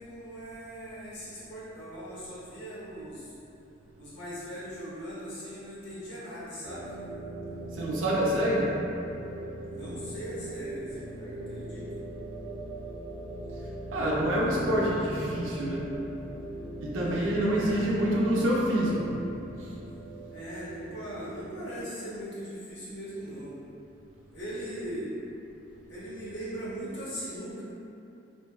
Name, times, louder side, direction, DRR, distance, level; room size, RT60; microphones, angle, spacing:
voice 1, 0.0-3.3 3.9-6.9 9.6-11.9 17.5-17.9 20.3-23.6 24.3-25.1 25.9-27.6, equal, 65° left, -10 dB, 0.8 m, -39 dB
sound 1, 6.6-21.6, right 1 dB, 50° right, 0.7 m, -40 dB
voice 2, 7.8-8.7 13.9-15.8 16.8-19.0, equal, 90° right, -5 dB, 0.5 m, -26 dB
2.6 x 2.2 x 2.3 m, 2.8 s
head